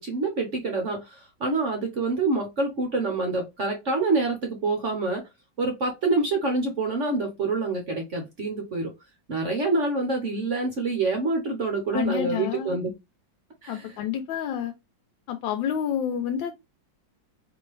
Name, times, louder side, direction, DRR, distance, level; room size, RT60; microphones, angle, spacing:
voice 1, 0.0-5.2 5.6-8.9 9.3-12.9 13.6-14.0, right 3 dB, 55° right, 0.9 m, -26 dB
voice 2, 11.9-12.8 13.7-14.7 15.3-16.5, left 9 dB, 85° left, 1.3 m, -29 dB
4.3 x 3.0 x 3.1 m
omnidirectional pair, 2.1 m